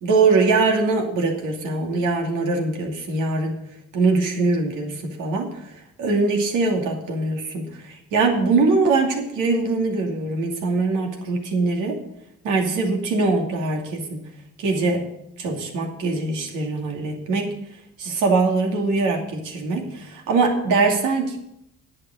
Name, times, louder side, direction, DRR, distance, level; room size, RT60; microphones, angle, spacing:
voice 1, 0.0-3.6 3.9-5.5 6.0-12.0 12.4-14.2 14.6-15.1 15.4-17.6 18.0-21.4, right 3 dB, 85° right, 2 dB, 2.7 m, -22 dB
10.5 x 6.6 x 8.3 m, 0.79 s
cardioid pair, 90°, 30 cm